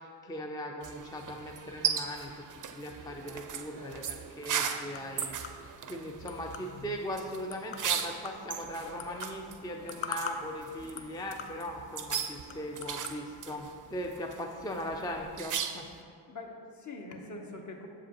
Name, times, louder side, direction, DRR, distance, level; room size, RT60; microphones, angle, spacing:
voice 1, 0.0-15.9, equal, 10° left, 2 dB, 0.4 m, -39 dB
sound 1, 0.8-16.0, right 8 dB, 45° right, 0.5 m, -38 dB
voice 2, 3.7-4.2 16.3-17.9, left 2 dB, 40° left, 2 dB, 0.9 m, -44 dB
sound 2, 3.8-13.2, left 6 dB, 75° left, 0.6 m, -46 dB
7.1 x 4.9 x 2.9 m, 2.3 s
supercardioid pair, 50°, 45 cm